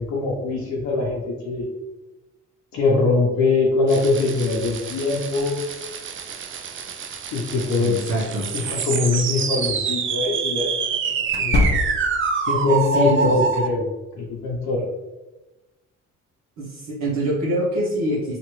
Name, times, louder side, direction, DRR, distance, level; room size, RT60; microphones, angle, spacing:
voice 1, 0.0-1.7 2.7-5.6 7.3-8.0 8.5-11.6 12.5-13.9 14.1-14.8, left 3 dB, 75° left, -5 dB, 0.8 m, -22 dB
sound 1, 3.9-13.7, right 6 dB, 45° right, 0.4 m, -26 dB
voice 2, 7.8-8.5 12.7-13.3 16.6-18.4, right 1 dB, 70° right, -8 dB, 1.0 m, -25 dB
sound 2, 9.1-9.2 11.3-12.3, left 2 dB, 35° left, 0.4 m, -23 dB
2.9 x 2.5 x 3.0 m, 1.0 s
cardioid pair, 90°, 30 cm